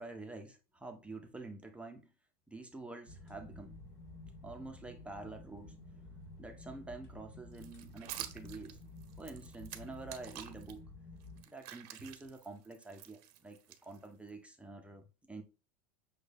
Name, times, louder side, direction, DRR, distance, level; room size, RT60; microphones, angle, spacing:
voice 1, 0.0-2.1 2.5-3.8 4.4-5.8 6.4-8.8 9.2-10.9 11.5-15.4, right 3 dB, 5° right, 0.4 m, -48 dB
sound 1, 3.1-11.4, left 2 dB, 55° left, 2.4 m, -52 dB
sound 2, 7.5-10.7 11.2-14.3, right 12 dB, 75° right, 0.7 m, -49 dB
6.3 x 2.1 x 3.2 m
supercardioid pair, 150°, 20 cm